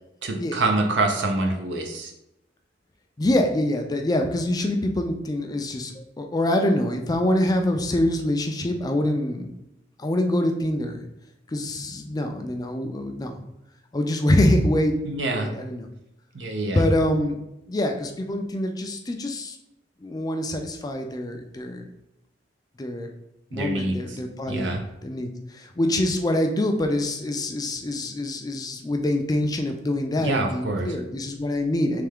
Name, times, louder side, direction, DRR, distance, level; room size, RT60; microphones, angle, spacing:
voice 1, 0.2-2.1 15.1-15.5 16.3-16.8 23.5-24.2 24.5-24.8 30.2-30.9, right 2 dB, 70° right, 2 dB, 0.7 m, -26 dB
voice 2, 3.2-9.5 10.0-11.0 11.5-13.4 13.9-15.9 16.7-17.4 17.7-19.6 20.0-21.9 22.8-23.1 23.5-24.7 25.0-25.3 25.5-32.1, left 1 dB, 20° left, 4 dB, 0.4 m, -25 dB
3.4 x 3.3 x 3.5 m, 0.87 s
head